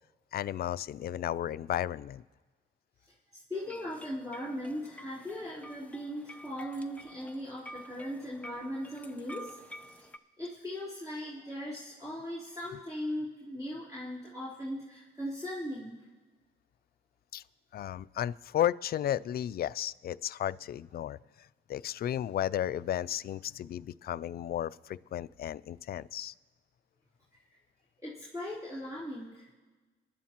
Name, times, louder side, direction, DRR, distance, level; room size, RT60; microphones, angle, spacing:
voice 1, 0.3-2.2 17.3-17.4 17.7-21.2 21.7-26.3, left 11 dB, 50° left, 18 dB, 0.4 m, -33 dB
voice 2, 3.3-9.6 9.9-10.0 10.4-16.0 27.3-27.4 28.0-29.5, equal, 15° right, -9 dB, 3.5 m, -39 dB
sound 1, 3.5-10.2, equal, 5° left, 0.6 m, -49 dB
24.5 x 11.5 x 3.0 m, 1.3 s
cardioid pair, 90°, 20 cm